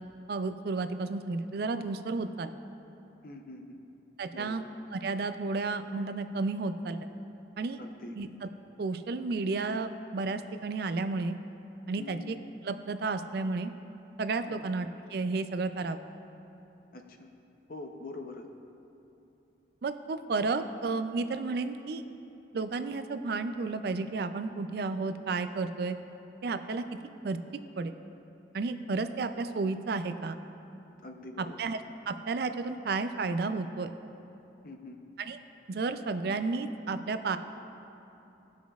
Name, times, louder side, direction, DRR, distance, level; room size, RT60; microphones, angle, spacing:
voice 1, 0.3-2.5 4.2-4.6 4.9-7.1 7.6-7.8 8.2-8.5 8.8-11.4 11.9-12.4 12.6-13.7 14.2-16.0 19.8-22.0 22.5-26.0 26.4-26.8 27.2-27.4 27.8-27.9 28.5-30.4 31.4-33.9 35.2-35.4 35.7-37.4, right 3 dB, 55° right, 9 dB, 0.4 m, -32 dB
voice 2, 3.2-3.8 4.3-4.5 7.8-8.2 12.0-12.2 14.5-14.6 16.9-17.3 17.7-18.5 31.0-31.6 34.6-35.0, left 2 dB, 50° left, 4 dB, 0.6 m, -44 dB
17.5 x 6.1 x 2.4 m, 2.9 s
head